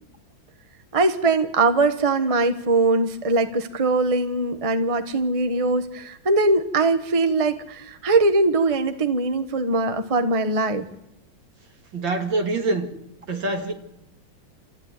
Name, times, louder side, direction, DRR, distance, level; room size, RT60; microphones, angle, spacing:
voice 1, 0.9-10.9, right 3 dB, 20° right, 1.1 m, -21 dB
voice 2, 11.9-12.9 13.3-13.7, right 2 dB, 70° right, 3.0 m, -25 dB
27.5 x 14.5 x 9.6 m
omnidirectional pair, 2.2 m